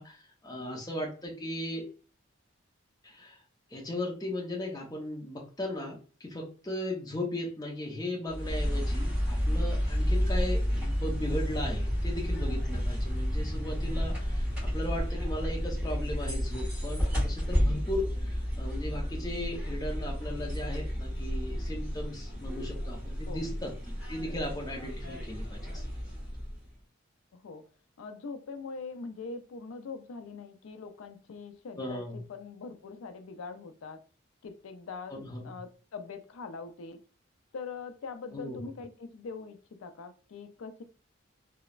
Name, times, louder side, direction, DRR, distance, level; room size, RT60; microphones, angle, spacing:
voice 1, 0.0-1.8 3.0-3.4 3.7-25.8 31.8-32.2 35.1-35.6 38.3-38.6, left 1 dB, 20° left, -2 dB, 0.6 m, -37 dB
sound 1, 8.3-26.7, equal, 5° right, 1.2 m, -31 dB
voice 2, 27.3-27.6 28.0-34.0 34.4-35.1 35.4-37.0 37.5-40.8, left 4 dB, 85° left, 9 dB, 0.4 m, -42 dB
3.0 x 2.0 x 2.3 m, 0.38 s
head